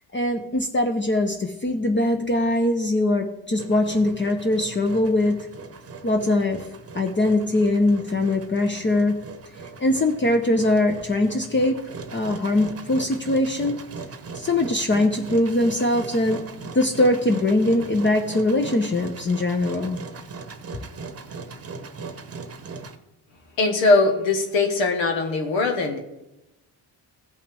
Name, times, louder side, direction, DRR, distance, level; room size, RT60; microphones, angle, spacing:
voice 1, 0.1-5.4 6.0-6.6 6.9-9.2 9.8-11.8 12.1-13.8 14.3-16.4 16.7-20.0, left 1 dB, 25° left, 3 dB, 0.9 m, -22 dB
Engine, 3.6-23.0, right 4 dB, 30° right, 1.0 m, -39 dB
voice 2, 23.6-26.0, left 3 dB, 85° left, 3 dB, 1.5 m, -20 dB
16.5 x 5.6 x 3.5 m, 0.95 s
supercardioid pair, 70°, 45 cm